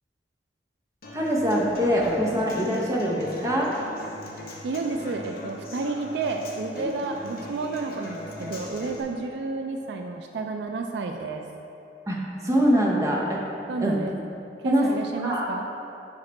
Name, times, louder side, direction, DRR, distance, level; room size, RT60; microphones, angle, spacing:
Human voice / Acoustic guitar, 1.0-9.0, left 1 dB, 55° left, 0.9 m, -41 dB
voice 1, 1.1-3.7 12.1-12.2 12.4-13.4 13.8-14.0 14.6-14.9 15.2-15.5, equal, 20° right, -3 dB, 0.8 m, -23 dB
voice 2, 4.6-11.4 13.7-14.2 14.6-15.7, right 3 dB, 70° right, 4 dB, 0.4 m, -31 dB
6.0 x 4.8 x 4.3 m, 2.8 s
head